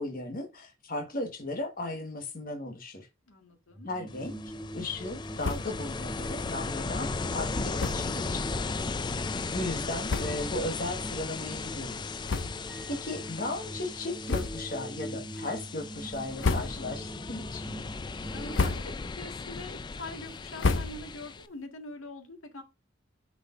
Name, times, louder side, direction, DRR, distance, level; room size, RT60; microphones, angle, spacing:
voice 1, 0.0-3.1 3.8-4.3 4.7-8.7 9.5-12.2 12.9-17.6, left 2 dB, 45° left, 1.4 m, -36 dB
voice 2, 3.3-3.9 12.9-13.0 18.3-22.6, left 2 dB, 80° left, 1.8 m, -44 dB
sound 1, 3.7-18.6, right 1 dB, 5° right, 0.9 m, -43 dB
Ocean, 4.1-21.5, left 4 dB, 20° left, 0.3 m, -37 dB
sound 2, 5.4-5.9 6.2-6.3 6.6-6.7 7.7-8.2 8.9-9.0 9.7-9.8 10.0-10.6 11.1-11.3 12.2-12.9 13.2-13.4 14.2-14.8 15.3-15.7 16.2-17.1 17.5-17.9 18.3-19.2 19.5-21.4, left 3 dB, 65° left, 0.7 m, -32 dB
9.2 x 5.1 x 2.5 m
head